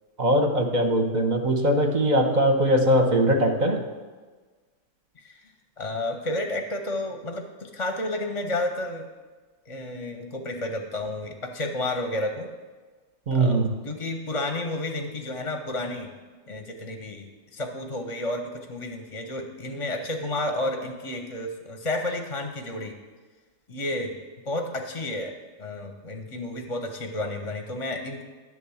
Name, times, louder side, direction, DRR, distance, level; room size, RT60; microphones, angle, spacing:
voice 1, 0.2-3.8 13.3-13.7, right 1 dB, 40° right, 4 dB, 0.7 m, -21 dB
voice 2, 5.2-9.1 9.7-12.5 13.3-16.1 16.5-22.9 23.7-24.2 24.5-25.3 25.6-28.2, left 1 dB, 30° left, 4 dB, 0.7 m, -31 dB
10.5 x 3.6 x 7.0 m, 1.4 s
omnidirectional pair, 1.4 m